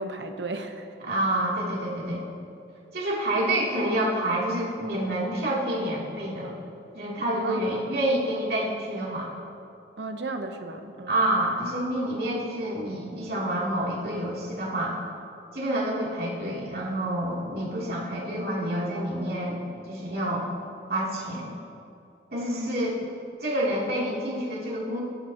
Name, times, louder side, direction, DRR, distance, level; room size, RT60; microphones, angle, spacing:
voice 1, 0.0-0.9 7.4-7.6 10.0-11.1 22.4-22.7, right 2 dB, 85° right, 7 dB, 0.9 m, -34 dB
voice 2, 1.0-2.2 2.9-6.5 6.9-9.3 11.1-15.0 15.5-20.5 20.9-21.6 22.3-23.0 23.4-25.0, right 1 dB, 60° right, -5 dB, 2.9 m, -28 dB
21.0 x 11.0 x 2.9 m, 2.6 s
head